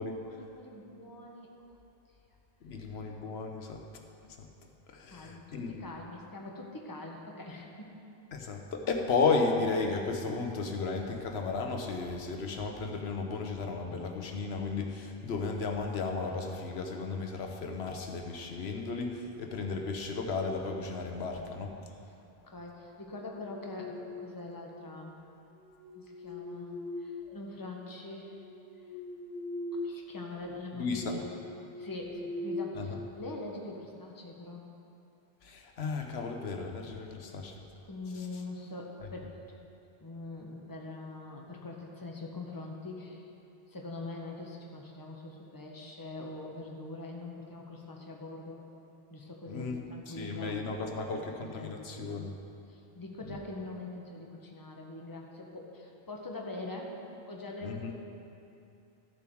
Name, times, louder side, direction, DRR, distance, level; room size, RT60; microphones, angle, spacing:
voice 1, 0.0-1.5 5.1-7.9 21.2-21.5 22.4-25.1 25.9-26.7 27.0-28.3 29.7-31.2 31.8-34.7 37.8-39.3 40.0-43.2 43.7-48.6 49.1-52.2 52.7-56.9 57.3-57.9, left 2 dB, 20° left, 0 dB, 1.1 m, -43 dB
voice 2, 2.6-3.8 4.9-5.9 8.3-21.7 30.8-31.2 32.7-33.0 35.4-37.5 38.1-38.4 49.5-49.8 50.1-52.3 53.2-53.4 57.6-57.9, left 4 dB, 80° left, 3 dB, 1.1 m, -34 dB
sound 1, 23.1-24.6 25.6-27.7 28.2-30.0 30.3-30.6 31.1-33.4, left 2 dB, 5° left, 1.9 m, -41 dB
13.5 x 7.0 x 4.6 m, 2.7 s
omnidirectional pair, 1.0 m